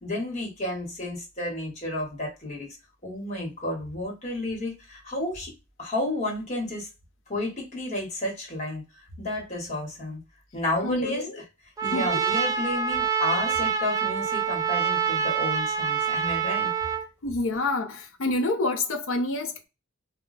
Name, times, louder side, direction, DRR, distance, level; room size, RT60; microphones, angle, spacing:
voice 1, 0.0-2.7 3.0-5.5 5.8-6.9 7.3-8.8 9.2-10.2 10.5-11.4 11.8-16.7, left 1 dB, 35° left, 1.2 m, -31 dB
voice 2, 10.8-11.4 11.9-12.1 17.2-19.7, left 2 dB, 75° left, 0.6 m, -27 dB
Trumpet, 11.8-17.1, right 6 dB, 15° right, 0.3 m, -26 dB
2.3 x 2.1 x 3.9 m
head